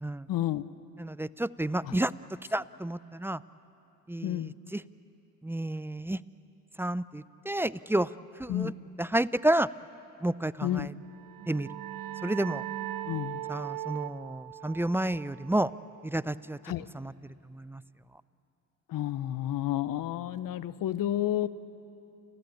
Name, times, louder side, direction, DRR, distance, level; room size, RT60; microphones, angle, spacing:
voice 1, 0.3-0.7 1.8-1.9 4.2-4.5 8.5-8.7 10.6-10.9 13.0-13.4 16.6-16.9 18.9-21.5, left 12 dB, 60° left, 15 dB, 1.0 m, -30 dB
voice 2, 1.0-2.1 2.5-3.4 4.1-4.8 5.4-6.2 6.8-8.1 8.4-8.7 9.0-9.7 10.2-10.9 11.5-11.7 12.2-12.6 13.5-15.7 16.0-16.6 16.9-17.1 17.5-17.8, right 1 dB, 5° right, 17 dB, 0.5 m, -30 dB
sound 1, 11.1-16.4, right 14 dB, 65° right, 0.8 m, -40 dB
29.5 x 16.0 x 8.6 m, 2.8 s
hypercardioid pair, 55°, 37 cm